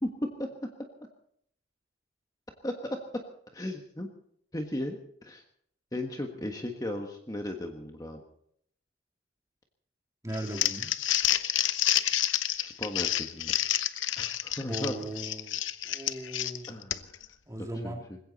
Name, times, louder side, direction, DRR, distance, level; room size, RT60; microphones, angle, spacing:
voice 1, 0.0-0.5 2.6-3.0 3.5-4.1 4.5-5.4 5.9-8.2 12.6-13.5 14.2-14.9 16.7-17.2 17.6-18.2, left 1 dB, 20° left, 3 dB, 1.4 m, -36 dB
voice 2, 10.2-10.9 14.7-15.6 15.8-16.7 17.5-18.0, right 1 dB, 15° right, 2 dB, 2.6 m, -37 dB
Crumpling crinkling, 10.3-17.2, left 12 dB, 85° left, 0.8 m, -29 dB
20.5 x 16.5 x 4.2 m, 0.68 s
head